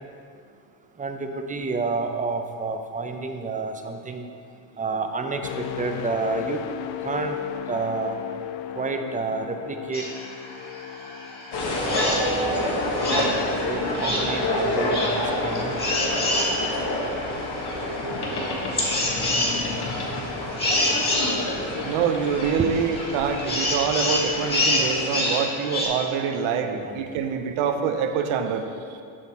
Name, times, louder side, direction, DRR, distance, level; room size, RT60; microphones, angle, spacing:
voice 1, 1.0-4.3 4.8-6.6 7.0-7.4 7.7-8.2 8.8-10.1 11.8-12.8 13.1-13.3 13.6-15.7 22.6-22.7 26.5-27.0, right 4 dB, 15° right, 5 dB, 0.6 m, -29 dB
sound 1, 5.4-13.2 13.7-13.9, left 10 dB, 70° left, 0.6 m, -36 dB
sound 2, 9.9-25.9, left 1 dB, 20° left, 2.0 m, -28 dB
sound 3, 11.5-25.4, left 2 dB, 50° left, 1.5 m, -28 dB
voice 2, 21.8-29.0, right 6 dB, 75° right, 6 dB, 0.8 m, -25 dB
7.7 x 5.9 x 4.3 m, 2.3 s
cardioid pair, 90°, 49 cm